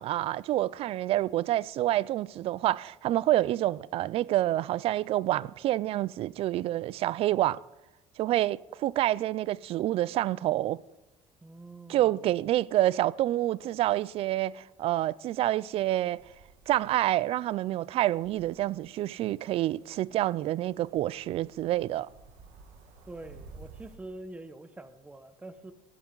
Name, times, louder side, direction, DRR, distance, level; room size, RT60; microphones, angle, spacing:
voice 1, 0.0-7.6 8.2-10.8 11.9-16.2 16.7-22.1, right 14 dB, 55° right, 0.4 m, -28 dB
voice 2, 11.4-12.2 23.1-25.7, right 2 dB, 10° right, 0.9 m, -45 dB
sound 1, 15.7-24.0, right 4 dB, 80° right, 2.2 m, -55 dB
15.5 x 11.0 x 3.9 m
cardioid pair, 120°, 12 cm